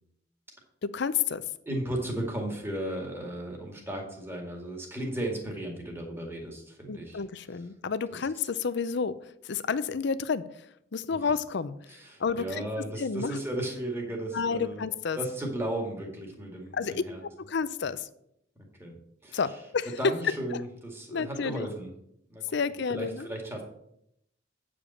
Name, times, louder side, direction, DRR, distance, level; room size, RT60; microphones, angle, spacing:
voice 1, 0.8-1.4 6.9-9.2 9.4-10.5 10.9-11.8 12.2-12.6 13.0-13.4 14.3-15.2 16.7-18.1 19.3-19.9 20.2-20.6 21.1-21.7 22.5-23.3, left 5 dB, 60° left, 15 dB, 0.5 m, -30 dB
voice 2, 1.7-7.2 8.1-8.2 11.9-14.8 15.2-17.2 18.6-18.9 19.2-19.4 20.0-21.9 22.3-22.4 22.9-23.6, right 1 dB, 15° right, 0 dB, 2.1 m, -35 dB
8.8 x 5.1 x 6.9 m, 0.75 s
head